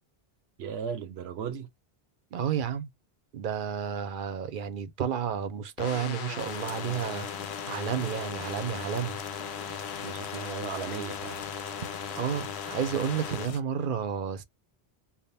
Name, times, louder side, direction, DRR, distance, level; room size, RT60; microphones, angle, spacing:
voice 1, 0.6-1.7 10.0-11.4, right 7 dB, 85° right, 0.9 m, -36 dB
voice 2, 2.3-2.9 3.3-7.3 7.7-9.2 12.1-14.4, right 8 dB, 60° right, 0.7 m, -31 dB
sound 1, 5.8-13.5, left 7 dB, 85° left, 0.9 m, -37 dB
sound 2, 6.4-13.6, left 7 dB, 55° left, 0.4 m, -45 dB
3.5 x 2.1 x 4.1 m
omnidirectional pair, 1.1 m